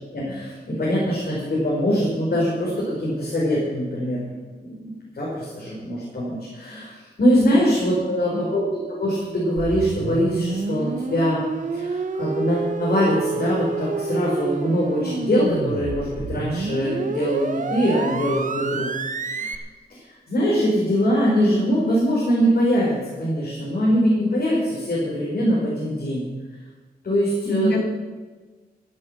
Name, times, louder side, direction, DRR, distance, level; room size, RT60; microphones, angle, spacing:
voice 1, 0.1-4.2 4.6-11.4 11.7-19.5 19.9-20.0 20.3-26.2 27.0-27.7, equal, 65° left, -6 dB, 4.7 m, -22 dB
sound 1, 9.6-19.6, right 4 dB, 50° right, 1.0 m, -29 dB
voice 2, 27.4-27.8, left 2 dB, 90° left, 3 dB, 2.2 m, -26 dB
14.5 x 10.5 x 6.6 m, 1.3 s
wide cardioid pair, 120°, 17 cm